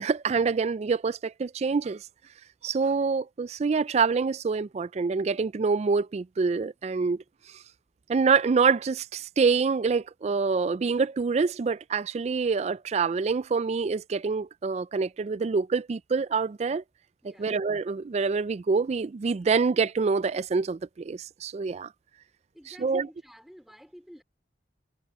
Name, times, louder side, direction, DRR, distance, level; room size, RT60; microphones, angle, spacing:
voice 1, 0.0-2.0 2.6-7.2 8.1-16.8 17.2-21.9 22.7-23.1, right 5 dB, 35° right, 0.3 m, -26 dB
voice 2, 17.2-17.6 22.5-24.2, equal, ahead, 3.1 m, -51 dB
head